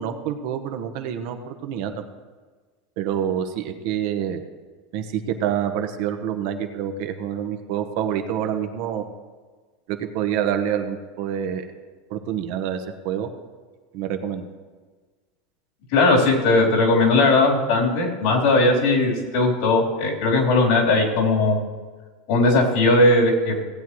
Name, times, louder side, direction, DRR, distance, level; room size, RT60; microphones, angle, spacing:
voice 1, 0.0-2.0 3.0-4.4 4.9-9.0 9.9-11.7 12.1-13.3 13.9-14.5, right 9 dB, 60° right, 6 dB, 1.1 m, -27 dB
voice 2, 15.9-21.6 22.3-23.5, left 2 dB, 65° left, -3 dB, 3.5 m, -18 dB
17.5 x 8.2 x 3.1 m, 1.4 s
hypercardioid pair, 110°, 0 cm